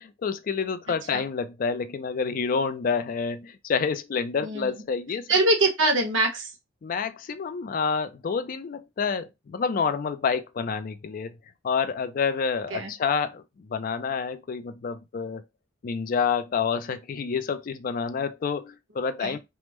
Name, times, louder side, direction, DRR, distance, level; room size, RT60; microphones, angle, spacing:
voice 1, 0.0-5.3 6.8-11.4 11.6-15.4 15.8-19.4, left 5 dB, 45° left, 0.4 m, -28 dB
voice 2, 4.4-4.7 5.3-6.5 12.7-12.9 19.2-19.4, right 2 dB, 85° right, 1.0 m, -23 dB
3.4 x 2.0 x 3.0 m
head